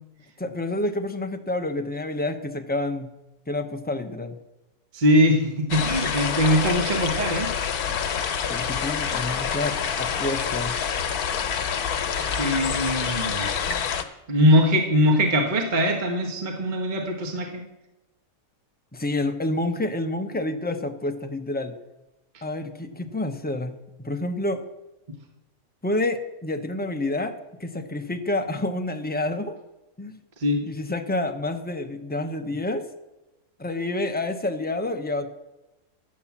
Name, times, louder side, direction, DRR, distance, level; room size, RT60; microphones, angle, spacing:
voice 1, 0.4-3.1 3.5-4.4 8.5-10.8 18.9-21.8 22.4-24.6 25.8-29.6 30.0-30.2 30.6-32.9 33.6-35.3, left 2 dB, 15° left, 6 dB, 0.4 m, -28 dB
voice 2, 4.9-7.5 12.3-13.5 14.3-17.6 22.3-22.4 30.4-30.6, equal, 30° right, 3 dB, 1.4 m, -22 dB
sound 1, 5.7-14.0, left 7 dB, 75° left, 1.5 m, -27 dB
11.5 x 8.5 x 7.2 m, 0.99 s
omnidirectional pair, 1.6 m